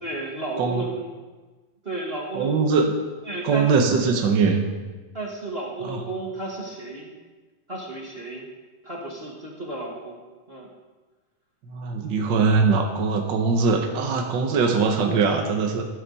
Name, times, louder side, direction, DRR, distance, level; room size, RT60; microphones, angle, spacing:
voice 1, 0.0-1.1 1.8-2.6 3.2-3.7 5.1-7.1 7.7-8.5 8.8-10.2 10.5-10.7, right 2 dB, 25° right, -2 dB, 1.5 m, -32 dB
voice 2, 2.3-2.9 3.4-4.6 5.8-6.0 11.7-15.8, right 4 dB, 65° right, 3 dB, 1.1 m, -21 dB
14.5 x 13.5 x 4.2 m, 1.3 s
omnidirectional pair, 3.7 m